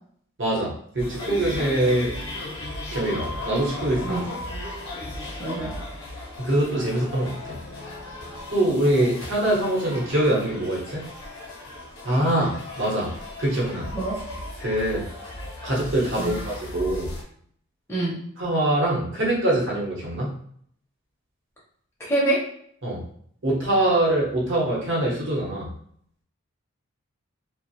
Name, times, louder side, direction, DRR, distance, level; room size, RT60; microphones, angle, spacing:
voice 1, 0.4-2.1 2.9-4.2 6.4-7.6 8.5-11.0 12.0-13.1 13.4-13.9 14.6-15.1 15.6-17.2 18.4-20.3 22.8-23.0 23.4-25.7, right 1 dB, 55° right, -3 dB, 0.8 m, -24 dB
sound 1, 1.0-17.2, left 1 dB, 70° left, 0.6 m, -36 dB
voice 2, 5.4-5.7 13.9-14.2 16.2-16.4 17.9-18.2 22.0-22.4, right 2 dB, 10° left, -6 dB, 0.5 m, -25 dB
2.4 x 2.0 x 2.6 m, 0.64 s
head